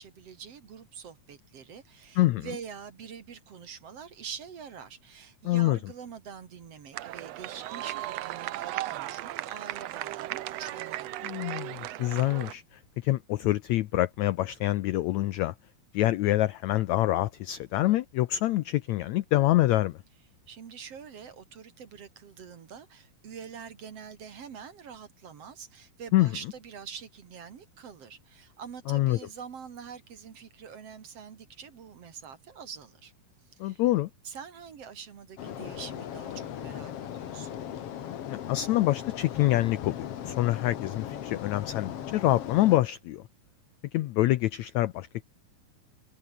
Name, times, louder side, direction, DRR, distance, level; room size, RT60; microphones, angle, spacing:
voice 1, 0.0-11.3 20.5-33.1 33.5-33.8 34.2-37.6, right 7 dB, 50° right, 2.6 m, -45 dB
voice 2, 2.2-2.5 5.4-5.8 11.2-15.5 15.9-20.0 26.1-26.3 28.9-29.2 33.6-34.1 38.3-43.3 43.9-45.2, left 16 dB, 85° left, 1.6 m, -26 dB
sound 1, 6.9-12.5, right 14 dB, 85° right, 1.4 m, -36 dB
sound 2, 35.4-42.8, left 10 dB, 55° left, 1.9 m, -38 dB
omnidirectional pair, 4.1 m